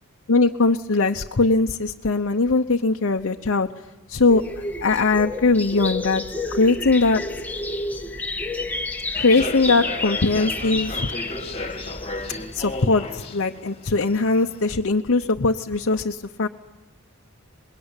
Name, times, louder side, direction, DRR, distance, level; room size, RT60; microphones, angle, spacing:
voice 1, 0.3-3.7 4.1-4.4 4.8-6.2 6.5-7.2 9.2-11.1 12.5-16.5, left 3 dB, 60° left, 3 dB, 0.9 m, -20 dB
sound 1, 4.3-12.8, left 2 dB, 10° left, 1.4 m, -31 dB
Human voice / Subway metro underground, 9.1-14.7, left 2 dB, 30° left, 2.0 m, -34 dB
25.0 x 21.5 x 9.8 m, 0.97 s
head